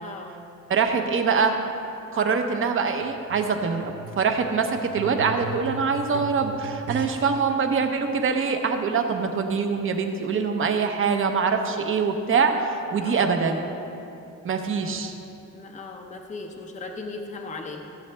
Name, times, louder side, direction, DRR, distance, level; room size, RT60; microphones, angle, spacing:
voice 1, 0.0-0.3 13.0-13.3 15.5-18.0, left 3 dB, 25° left, 2 dB, 0.5 m, -37 dB
voice 2, 0.7-1.5 2.1-13.8 14.4-15.1, right 5 dB, 40° right, 5 dB, 0.8 m, -24 dB
sound 1, 3.0-7.4 8.2-8.3, right 4 dB, 75° right, 1.5 m, -38 dB
16.0 x 7.9 x 3.4 m, 2.8 s
wide cardioid pair, 175°, 32 cm